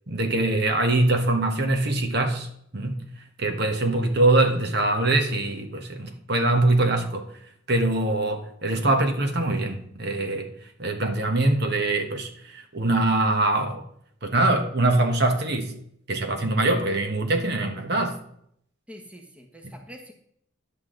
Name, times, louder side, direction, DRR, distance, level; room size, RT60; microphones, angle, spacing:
voice 1, 0.1-2.5 2.7-3.0 3.4-7.2 7.7-10.5 10.8-13.8 14.2-15.7 16.1-18.2, right 2 dB, 55° right, 4 dB, 1.4 m, -23 dB
voice 2, 18.9-20.1, equal, 5° right, 2 dB, 1.3 m, -45 dB
10.5 x 8.3 x 3.9 m, 0.68 s
head